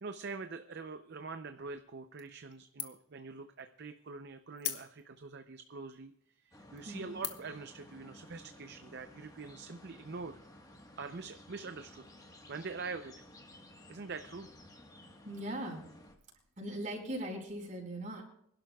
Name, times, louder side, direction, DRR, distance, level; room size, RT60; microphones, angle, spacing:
voice 1, 0.0-6.1 6.4-10.4 11.0-12.0 12.5-13.1 13.9-14.5, right 4 dB, 55° right, 8 dB, 0.6 m, -44 dB
sound 1, 2.2-2.5 2.8-3.2 3.6-3.7 4.6-5.3 5.9-6.0 6.6-6.8 7.2-7.6, left 11 dB, 55° left, 1.2 m, -40 dB
sound 2, 6.5-16.1, left 1 dB, 15° left, 1.3 m, -55 dB
voice 2, 15.2-15.8 16.6-18.2, right 1 dB, 40° right, 0 dB, 4.8 m, -39 dB
25.5 x 11.5 x 2.3 m, 0.73 s
head